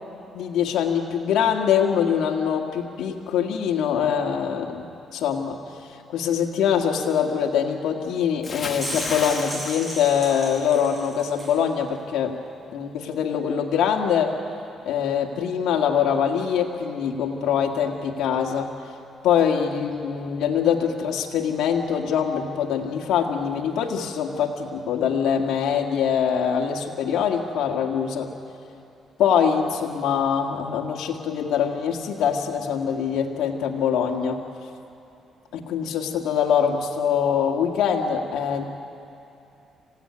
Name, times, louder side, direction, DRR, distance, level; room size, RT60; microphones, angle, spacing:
voice 1, 0.3-5.6 6.1-12.4 12.7-14.3 14.8-18.7 19.2-28.3 29.2-34.4 35.5-38.7, left 7 dB, 80° left, 0 dB, 1.8 m, -23 dB
Bathtub (filling or washing) / Splash splatter, 8.4-10.9 11.2-11.5, left 4 dB, 40° left, 1.8 m, -34 dB
sound 1, 8.6-11.6, right 1 dB, 15° right, 6.9 m, -35 dB
27.0 x 16.5 x 9.6 m, 2.8 s
cardioid pair, 90°, 0 cm